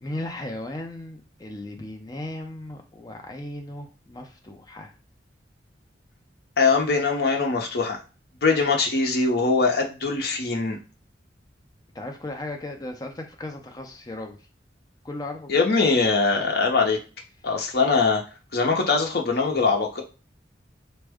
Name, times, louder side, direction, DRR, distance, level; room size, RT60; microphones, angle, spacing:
voice 1, 0.0-4.9 11.9-14.4 15.0-15.7, left 1 dB, 20° left, 3 dB, 0.5 m, -36 dB
voice 2, 6.6-8.0 8.4-10.8 15.5-17.0 17.4-18.2 18.5-20.0, left 4 dB, 60° left, 1 dB, 0.7 m, -22 dB
3.5 x 2.1 x 3.4 m, 0.34 s
head